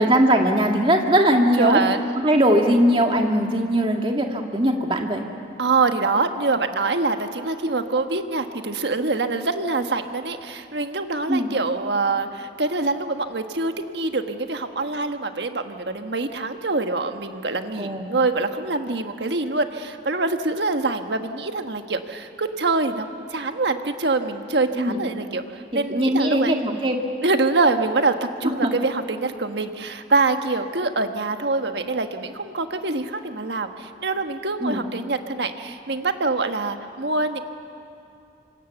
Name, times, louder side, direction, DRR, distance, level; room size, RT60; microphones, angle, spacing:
voice 1, 0.0-1.8 2.2-5.2 11.3-11.5 17.8-18.1 24.7-25.0 25.9-27.0 28.6-28.7 34.6-34.8, equal, 30° right, 2 dB, 1.9 m, -20 dB
voice 2, 1.6-2.1 5.6-26.8 27.2-37.4, right 3 dB, 70° right, 7 dB, 1.4 m, -25 dB
25.5 x 25.5 x 7.1 m, 2.7 s
head